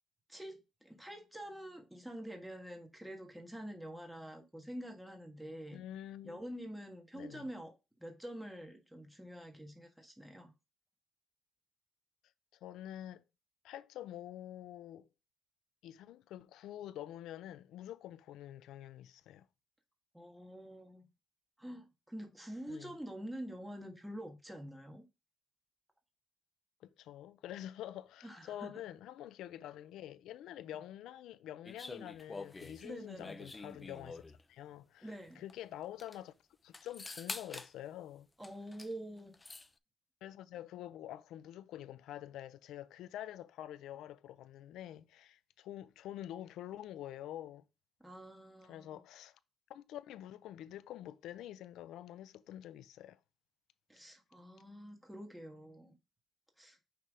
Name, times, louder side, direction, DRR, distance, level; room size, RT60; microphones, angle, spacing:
voice 1, 0.3-5.8 6.2-7.7 8.0-10.5 20.1-21.0 21.6-25.1 28.2-28.7 32.8-33.4 35.0-35.4 38.4-39.3 48.0-49.0 53.9-55.9 56.6-56.8, equal, 5° right, 1.5 m, -47 dB
voice 2, 5.7-6.4 7.1-7.5 12.6-13.2 13.6-15.1 15.8-19.5 22.7-23.0 26.8-34.2 34.5-36.3 36.6-38.3 40.2-47.6 48.6-49.4 49.7-53.2, left 12 dB, 85° left, 0.4 m, -47 dB
sound 1, 31.6-34.4 35.5-35.6 35.8-36.2 36.7-37.7 38.4-38.9 39.2-39.7, left 3 dB, 20° left, 0.5 m, -46 dB
5.9 x 3.4 x 4.8 m
cardioid pair, 90°, 0 cm